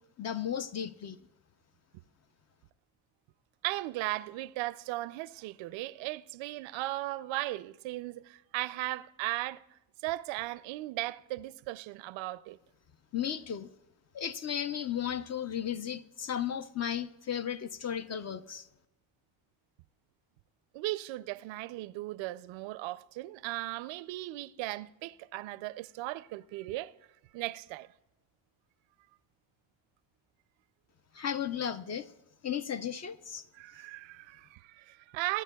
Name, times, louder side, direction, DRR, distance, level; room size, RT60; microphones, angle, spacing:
voice 1, 0.2-1.2 13.1-13.7 14.1-18.7 31.1-32.1 32.4-33.5, left 9 dB, 35° left, 0.6 m, -35 dB
voice 2, 3.6-9.6 10.0-12.6 20.7-26.9 27.3-27.9 33.5-35.4, right 18 dB, 80° right, 0.5 m, -37 dB
24.0 x 10.0 x 2.3 m
cardioid pair, 100°, 45 cm